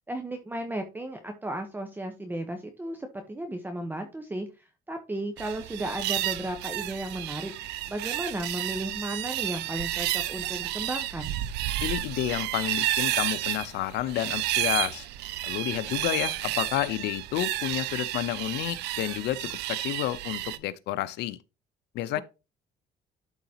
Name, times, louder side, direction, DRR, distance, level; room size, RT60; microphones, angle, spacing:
voice 1, 0.1-11.3 22.1-22.2, right 1 dB, 10° right, 1.0 m, -35 dB
sound 1, 5.4-20.6, right 15 dB, 85° right, 0.6 m, -31 dB
voice 2, 11.8-15.1 15.4-21.4 21.9-22.2, left 14 dB, 80° left, 0.7 m, -30 dB
12.0 x 4.0 x 2.9 m
cardioid pair, 110°, 17 cm